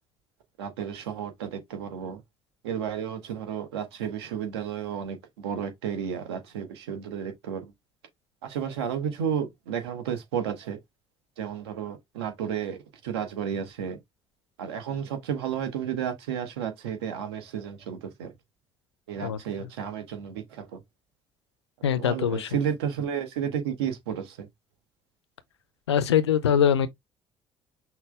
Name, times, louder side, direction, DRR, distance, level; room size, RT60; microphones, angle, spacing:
voice 1, 0.6-2.2 2.6-7.7 8.4-10.8 11.4-14.0 14.6-18.3 19.1-20.8 22.0-24.5, right 8 dB, 70° right, 1.0 m, -32 dB
voice 2, 19.2-19.7 21.8-22.5 25.9-26.9, left 8 dB, 80° left, 0.4 m, -23 dB
5.8 x 2.1 x 3.3 m
figure-of-eight pair, 50°, 14 cm